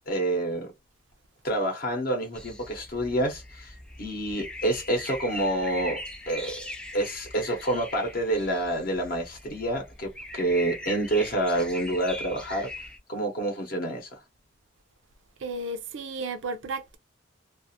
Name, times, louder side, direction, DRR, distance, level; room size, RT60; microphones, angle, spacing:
voice 1, 0.1-0.7 1.4-6.0 6.3-6.6 6.9-12.7 13.1-14.2, right 1 dB, 50° left, 0.7 m, -28 dB
sound 1, 2.3-13.0, left 1 dB, 5° left, 0.4 m, -41 dB
voice 2, 15.4-17.0, right 2 dB, 70° right, 0.4 m, -33 dB
2.4 x 2.4 x 2.6 m
head